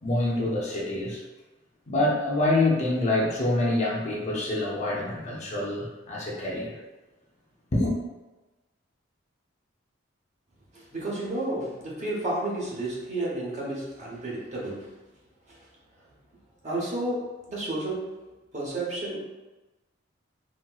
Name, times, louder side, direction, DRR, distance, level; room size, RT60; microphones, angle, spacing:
voice 1, 0.0-1.2 1.9-6.8 7.7-7.9, left 2 dB, 35° left, -4 dB, 0.6 m, -26 dB
voice 2, 10.7-15.0 15.5-15.6 16.6-18.2 18.5-19.2, right 1 dB, 35° right, -5 dB, 0.9 m, -31 dB
4.0 x 2.0 x 2.3 m, 1.1 s
head